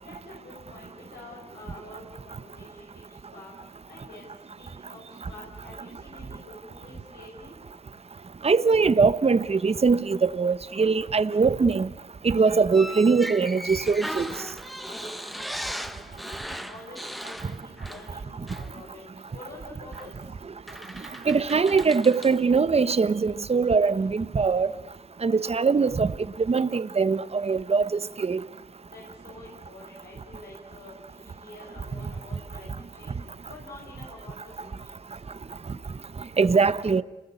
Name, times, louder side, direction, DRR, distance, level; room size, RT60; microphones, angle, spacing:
voice 1, 0.0-3.0 3.3-3.5 3.9-4.3 4.6-5.0 5.3-7.5 14.9-19.0 19.3-20.1 28.9-33.2 33.5-34.8, left 2 dB, 90° left, 6.5 m, -47 dB
voice 2, 8.4-11.9 12.2-14.3 21.3-24.7 25.2-28.4 36.4-37.0, right 4 dB, 40° right, 1.1 m, -22 dB
sound 1, 12.7-18.2 18.5-18.7 19.9-20.1 20.7-22.4, equal, ahead, 1.1 m, -37 dB
30.0 x 20.5 x 8.3 m
cardioid pair, 60°, 16 cm